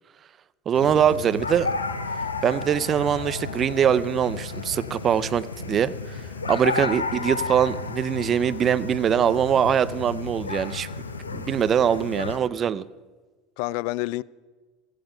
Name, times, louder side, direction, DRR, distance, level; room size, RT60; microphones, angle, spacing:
sound 1, 0.7-12.4, left 4 dB, 80° left, 0.9 m, -32 dB
voice 1, 0.7-1.7 2.4-6.2 6.5-10.9 11.3-12.8, right 8 dB, 35° right, 0.5 m, -23 dB
voice 2, 13.6-14.2, left 19 dB, 60° left, 0.4 m, -30 dB
16.0 x 14.0 x 5.3 m
figure-of-eight pair, 75°, 0 cm